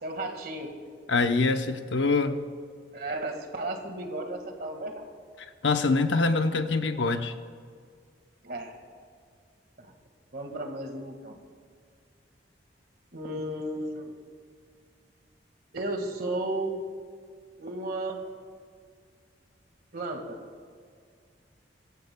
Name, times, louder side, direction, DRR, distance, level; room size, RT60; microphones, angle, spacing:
voice 1, 0.0-0.7 2.9-5.0 8.4-8.8 9.8-9.9 10.3-11.4 13.1-14.1 15.7-16.8 17.6-18.2 19.9-20.4, right 2 dB, 55° right, 4 dB, 1.8 m, -34 dB
voice 2, 1.1-2.3 5.6-7.3, left 3 dB, 90° left, 7 dB, 0.9 m, -24 dB
23.5 x 15.0 x 2.3 m, 2.1 s
head